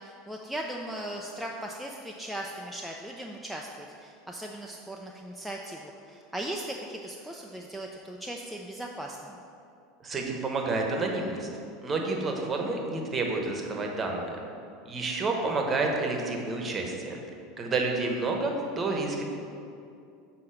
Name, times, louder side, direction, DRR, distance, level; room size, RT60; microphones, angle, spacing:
voice 1, 0.0-9.4, right 1 dB, ahead, -1 dB, 0.5 m, -38 dB
voice 2, 10.0-11.5 11.8-14.4 14.8-17.2 17.6-19.2, right 3 dB, 25° right, 1 dB, 1.1 m, -29 dB
6.5 x 4.1 x 5.9 m, 2.5 s
figure-of-eight pair, 75°, 0 cm